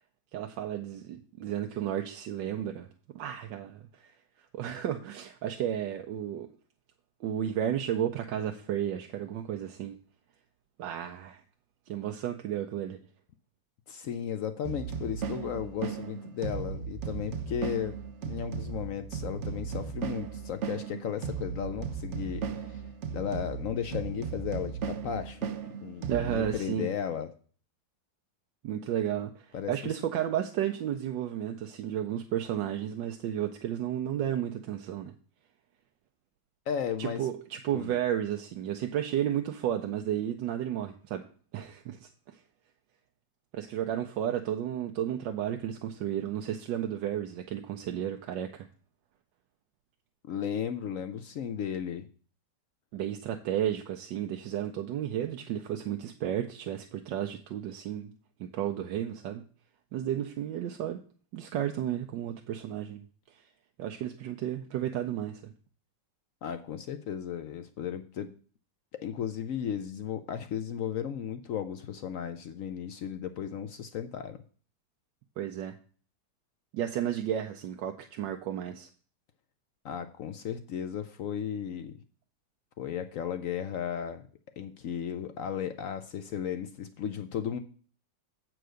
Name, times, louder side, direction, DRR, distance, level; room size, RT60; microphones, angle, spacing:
voice 1, 0.3-2.9 3.1-4.1 4.5-6.5 7.2-10.0 10.8-11.4 11.9-13.0 26.1-26.9 28.6-35.1 37.0-41.2 41.5-42.1 43.5-48.7 52.9-58.1 58.4-59.4 59.9-61.0 61.3-63.4 63.8-65.5 75.4-75.7 76.7-78.9, right 10 dB, 90° right, 5 dB, 1.3 m, -33 dB
voice 2, 13.9-18.0 18.3-22.8 23.1-25.4 25.8-27.3 29.5-29.7 36.7-37.3 37.7-38.0 50.2-52.1 66.4-68.3 68.9-74.4 79.8-81.9 82.8-84.2 84.6-87.6, left 8 dB, 70° left, 9 dB, 0.8 m, -35 dB
sound 1, 14.6-26.5, right 6 dB, 70° right, 0.7 m, -36 dB
7.8 x 4.7 x 6.3 m, 0.42 s
omnidirectional pair, 1.9 m